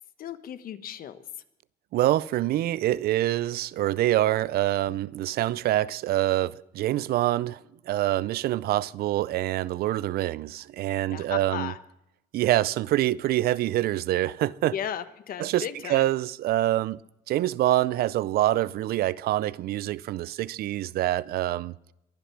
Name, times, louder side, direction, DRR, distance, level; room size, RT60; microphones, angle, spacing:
voice 1, 0.2-1.2 11.1-11.8 14.7-16.0, left 9 dB, 60° left, 1.2 m, -35 dB
voice 2, 1.9-7.6 7.9-11.7 12.3-14.7 15.4-17.0 17.3-21.7, right 14 dB, 65° right, 0.5 m, -25 dB
22.5 x 8.3 x 5.9 m
cardioid pair, 110°, 17 cm